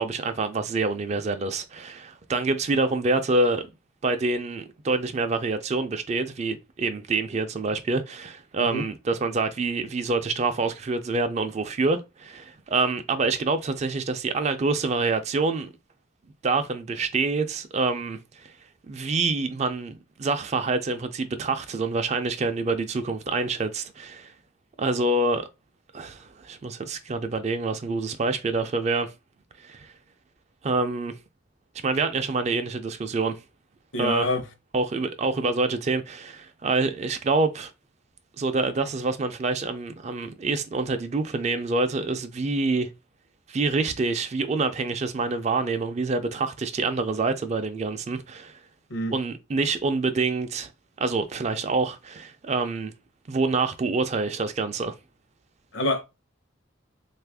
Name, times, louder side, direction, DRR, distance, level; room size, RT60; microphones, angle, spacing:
voice 1, 0.0-3.6 4.0-15.7 16.4-18.2 18.9-24.3 24.8-25.5 25.9-29.1 29.6-29.9 30.6-31.1 31.8-33.4 34.0-34.3 34.7-37.7 38.4-42.9 43.5-48.6 49.1-50.7 51.0-52.9 53.3-54.9, right 3 dB, 35° right, 0.4 m, -26 dB
voice 2, 33.9-34.4 48.9-49.1 55.7-56.0, left 1 dB, 75° left, 0.7 m, -26 dB
2.9 x 2.4 x 3.4 m
head